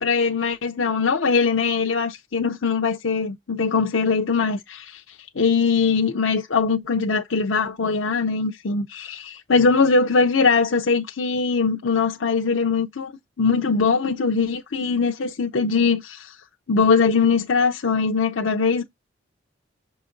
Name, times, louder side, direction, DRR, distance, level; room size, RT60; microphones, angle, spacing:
voice 1, 0.0-13.1 13.4-16.4 16.7-18.8, left 5 dB, 75° left, 0.7 m, -21 dB
7.0 x 4.0 x 3.8 m
head